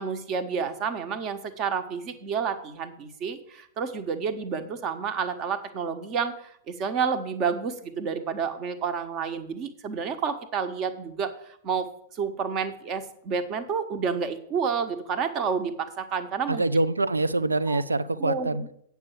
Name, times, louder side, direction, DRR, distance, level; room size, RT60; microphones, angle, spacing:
voice 1, 0.0-11.9 12.1-16.6 17.7-17.8 18.2-18.7, right 6 dB, 35° right, 10 dB, 1.2 m, -30 dB
voice 2, 16.5-18.6, right 2 dB, 80° right, 15 dB, 0.5 m, -25 dB
8.6 x 5.8 x 7.4 m, 0.70 s
figure-of-eight pair, 100°, 0 cm